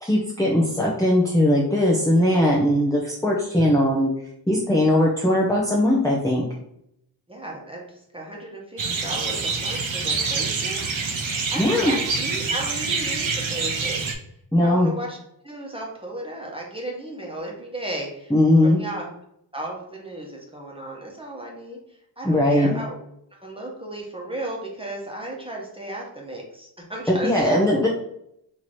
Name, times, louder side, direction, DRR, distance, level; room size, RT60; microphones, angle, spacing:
voice 1, 0.0-4.1 4.5-6.5 11.6-11.9 14.5-14.9 18.3-18.8 22.2-22.7 27.1-27.9, left 1 dB, 5° left, -5 dB, 0.7 m, -19 dB
voice 2, 7.3-7.9 8.1-10.8 11.5-14.0 14.6-15.2 15.4-18.3 18.6-19.1 19.5-21.8 22.2-23.0 23.4-27.9, right 1 dB, 10° right, -2 dB, 1.1 m, -34 dB
sound 1, 8.8-14.1, right 4 dB, 80° right, 0.7 m, -26 dB
3.1 x 3.0 x 4.1 m, 0.76 s
wide cardioid pair, 60°, 45 cm